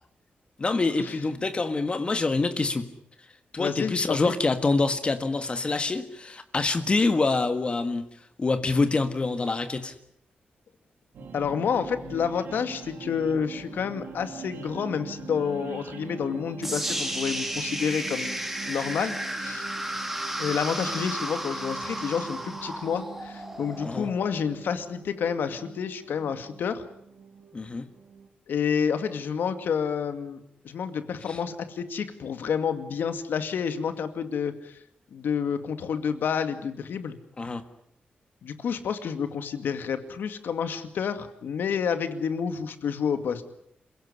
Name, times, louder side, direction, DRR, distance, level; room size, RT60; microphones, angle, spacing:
voice 1, 0.6-2.9 3.5-8.0 8.4-9.9 23.8-24.1 27.5-27.8 31.3-31.4 37.4-37.6, left 3 dB, 35° left, 9 dB, 1.7 m, -26 dB
voice 2, 3.6-4.3 11.3-18.4 18.7-19.7 20.4-26.8 28.5-34.8 35.1-37.2 38.4-43.4, left 7 dB, 80° left, 10 dB, 2.3 m, -29 dB
sound 1, 11.1-28.3, right 5 dB, 85° right, 3.3 m, -43 dB
sound 2, 16.6-24.7, right 1 dB, 5° right, 3.2 m, -33 dB
27.5 x 17.0 x 9.9 m, 0.72 s
wide cardioid pair, 120°, 3 cm